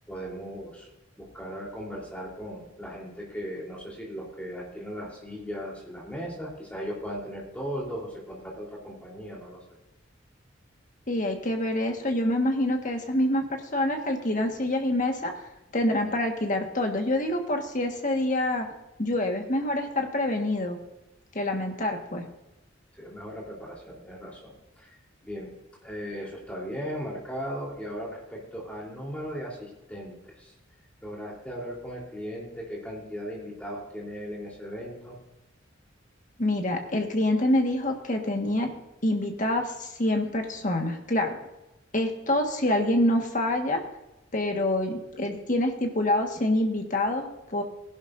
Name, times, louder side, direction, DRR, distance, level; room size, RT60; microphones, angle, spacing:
voice 1, 0.1-0.9 1.2-9.6 22.9-24.9 25.2-25.5 25.8-30.5 31.0-35.2, equal, 5° left, -4 dB, 3.7 m, -37 dB
voice 2, 11.1-15.3 15.7-18.7 19.0-20.8 21.3-22.2 36.4-38.7 39.0-41.4 41.9-43.8 44.3-47.6, left 1 dB, 40° left, 3 dB, 1.6 m, -26 dB
18.5 x 11.5 x 2.7 m, 0.95 s
head